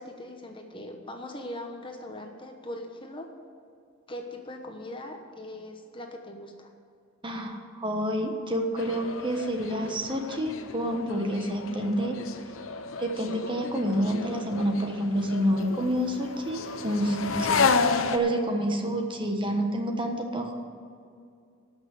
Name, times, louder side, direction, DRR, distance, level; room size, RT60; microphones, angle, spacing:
voice 1, 0.0-3.3 4.1-6.7, left 1 dB, 25° left, 4 dB, 1.0 m, -40 dB
voice 2, 7.2-12.2 13.0-17.6 18.1-20.6, equal, 25° right, 3 dB, 1.2 m, -28 dB
sound 1, 8.8-18.2, left 4 dB, 75° left, 0.8 m, -31 dB
12.5 x 6.3 x 8.2 m, 2.4 s
head